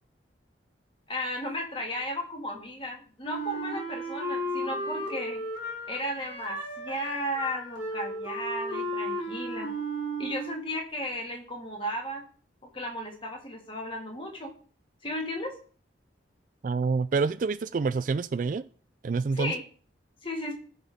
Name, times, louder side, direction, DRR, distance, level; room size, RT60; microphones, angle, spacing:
voice 1, 1.1-5.5 5.9-9.7 10.2-12.2 12.7-14.5 15.0-15.6 19.3-19.6 20.2-20.5, equal, 30° left, 1 dB, 1.9 m, -34 dB
Wind instrument woodwind instrument, 3.2-10.8, equal, 80° left, 3.0 m, -34 dB
voice 2, 16.6-18.6 19.0-19.5, right 4 dB, 45° right, 14 dB, 0.3 m, -27 dB
14.0 x 5.6 x 3.6 m, 0.43 s
head